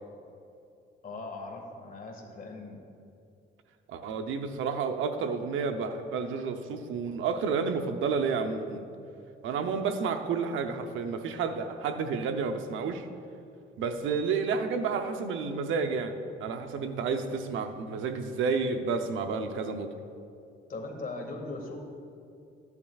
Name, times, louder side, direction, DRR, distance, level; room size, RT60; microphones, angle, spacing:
voice 1, 1.0-2.8 20.7-21.8, left 3 dB, 45° left, 2 dB, 1.9 m, -39 dB
voice 2, 3.9-8.8 9.4-13.1 13.8-19.9, right 5 dB, 80° right, 6 dB, 0.7 m, -30 dB
13.5 x 11.0 x 2.4 m, 2.6 s
cardioid pair, 90°, 20 cm